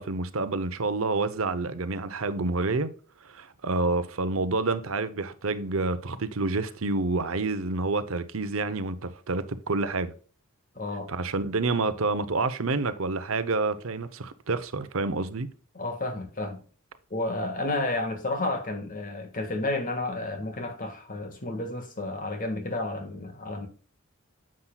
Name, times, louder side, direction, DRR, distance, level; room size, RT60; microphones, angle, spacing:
voice 1, 0.0-2.9 3.2-10.1 11.1-15.5, right 3 dB, 70° right, 0.8 m, -28 dB
voice 2, 10.7-11.1 15.7-16.6 17.1-23.7, left 2 dB, 40° left, 1.7 m, -31 dB
9.8 x 7.5 x 2.3 m
head